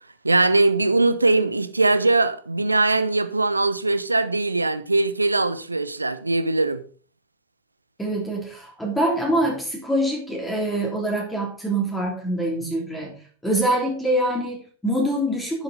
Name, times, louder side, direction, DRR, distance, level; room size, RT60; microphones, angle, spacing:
voice 1, 0.2-6.8, right 2 dB, 80° right, 0.7 m, -21 dB
voice 2, 8.0-15.6, right 1 dB, 10° left, 3.1 m, -25 dB
11.5 x 7.0 x 4.0 m
figure-of-eight pair, 90°, 0 cm